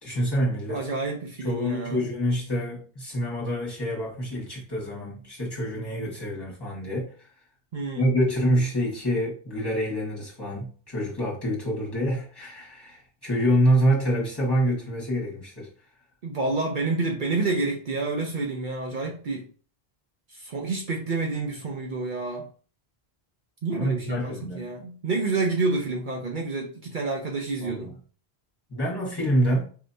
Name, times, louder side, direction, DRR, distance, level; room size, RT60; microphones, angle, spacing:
voice 1, 0.0-0.9 1.4-7.3 7.9-15.7 23.7-24.7 27.6-28.0 28.7-29.7, equal, 25° left, 1.6 m, -26 dB
voice 2, 0.7-2.0 7.7-8.1 16.2-19.5 20.3-22.5 23.6-27.9, right 3 dB, 55° right, 0.8 m, -29 dB
4.6 x 3.2 x 2.7 m
omnidirectional pair, 1.0 m